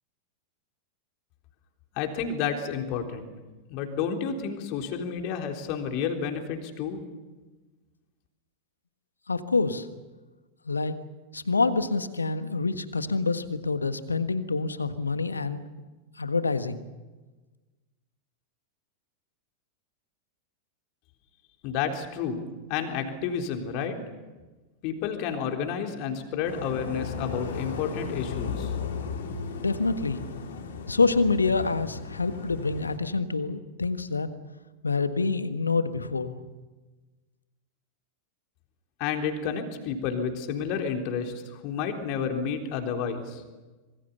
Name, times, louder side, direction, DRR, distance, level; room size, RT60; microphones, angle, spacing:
voice 1, 2.0-3.3 3.7-7.0 21.6-22.4 22.7-24.0 24.8-28.7 39.0-41.3 41.6-43.4, left 7 dB, 45° left, 4 dB, 3.7 m, -30 dB
voice 2, 9.3-9.9 10.6-10.9 11.3-15.6 16.2-16.8 29.6-30.3 30.9-34.3 34.8-36.4, left 3 dB, 80° left, 11 dB, 1.5 m, -26 dB
sound 1, 26.4-33.0, left 5 dB, 60° left, 3.5 m, -36 dB
26.0 x 23.5 x 7.0 m, 1.2 s
figure-of-eight pair, 90°, 0 cm